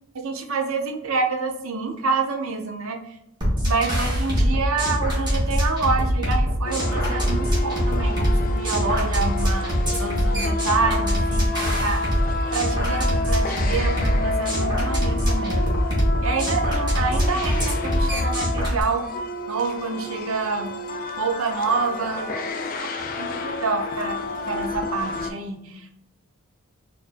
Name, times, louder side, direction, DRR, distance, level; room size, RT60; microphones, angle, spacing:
voice 1, 0.2-3.0 3.7-12.0 12.5-15.7 16.2-19.1 19.5-20.8 21.2-22.4 23.1-26.0, right 4 dB, 75° right, 3 dB, 0.6 m, -27 dB
sound 1, 3.4-18.8, equal, 20° right, 1.2 m, -23 dB
sound 2, 6.7-25.3, left 2 dB, 40° left, 0.3 m, -30 dB
4.5 x 2.6 x 2.5 m, 0.83 s
head